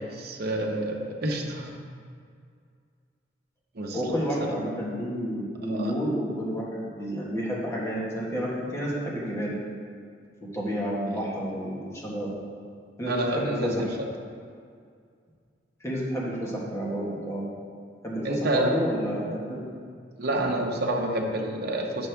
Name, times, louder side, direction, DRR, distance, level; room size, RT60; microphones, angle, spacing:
voice 1, 0.0-1.7 3.7-4.0 4.4-4.5 5.7-5.9 11.1-11.2 13.1-13.9 18.2-18.7 20.2-22.1, right 1 dB, 55° right, 1 dB, 0.9 m, -28 dB
voice 2, 3.9-9.6 10.4-12.3 13.0-13.7 15.8-17.5 18.0-19.7, equal, 15° left, -5 dB, 1.5 m, -30 dB
8.4 x 6.2 x 3.5 m, 2.2 s
head